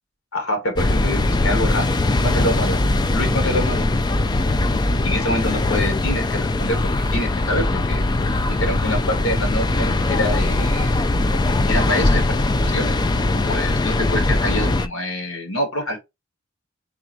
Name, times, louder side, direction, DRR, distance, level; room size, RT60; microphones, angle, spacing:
voice 1, 0.3-2.8 3.1-3.9 5.0-8.0 8.5-10.9 11.7-12.4 12.6-12.9 13.3-16.0, left 1 dB, 80° left, 1.6 m, -26 dB
sound 1, 0.7-14.9, left 2 dB, 20° left, 0.4 m, -20 dB
3.6 x 2.6 x 4.4 m
head